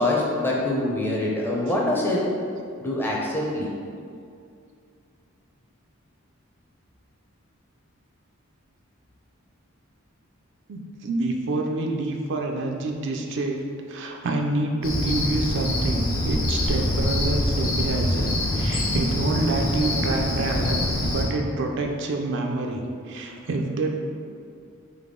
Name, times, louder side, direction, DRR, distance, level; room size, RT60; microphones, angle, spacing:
voice 1, 0.0-2.2 2.8-3.7 16.8-16.9, left 1 dB, 10° left, -4 dB, 0.5 m, -24 dB
voice 2, 10.7-13.6 13.9-23.9, right 2 dB, 55° right, 2 dB, 0.4 m, -27 dB
Cricket, 14.8-21.3, left 1 dB, 70° left, 0.8 m, -25 dB
3.9 x 3.3 x 3.6 m, 2.4 s
head